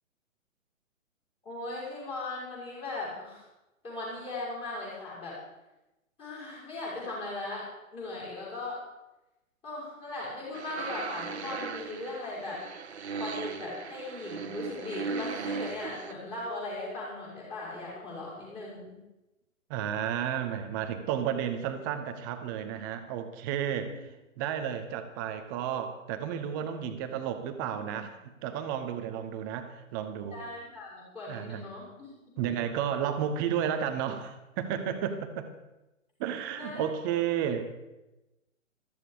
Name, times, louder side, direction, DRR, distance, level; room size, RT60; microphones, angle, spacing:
voice 1, 1.4-3.4 3.8-5.4 6.2-7.7 7.9-8.8 9.6-12.6 13.2-19.0 23.9-24.0 30.3-32.4 36.6-36.9, left 2 dB, 15° left, -6 dB, 6.1 m, -38 dB
sound 1, 10.5-16.1, right 5 dB, 55° right, 1.2 m, -38 dB
voice 2, 19.7-24.0 24.4-28.1 28.4-30.4 31.3-31.7 32.4-35.5 36.2-37.6, right 9 dB, 15° right, 9 dB, 0.8 m, -32 dB
14.0 x 13.5 x 5.0 m, 1.0 s
figure-of-eight pair, 125°, 40 cm